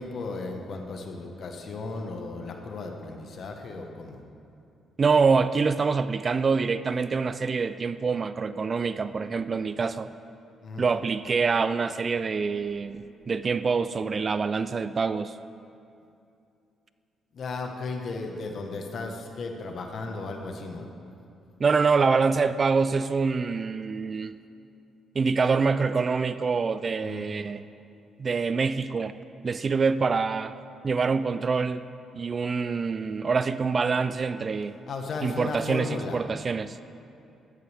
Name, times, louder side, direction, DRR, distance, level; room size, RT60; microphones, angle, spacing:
voice 1, 0.0-4.2 10.6-10.9 17.3-20.9 27.0-27.3 34.9-36.2, left 3 dB, 55° left, 3 dB, 1.3 m, -35 dB
voice 2, 5.0-10.1 10.8-15.4 21.6-24.4 25.2-27.6 28.2-29.1 29.4-30.5 30.8-31.8 32.1-34.8 35.2-36.8, right 5 dB, 40° right, 13 dB, 0.3 m, -25 dB
12.5 x 10.5 x 3.5 m, 2.6 s
cardioid pair, 90°, 0 cm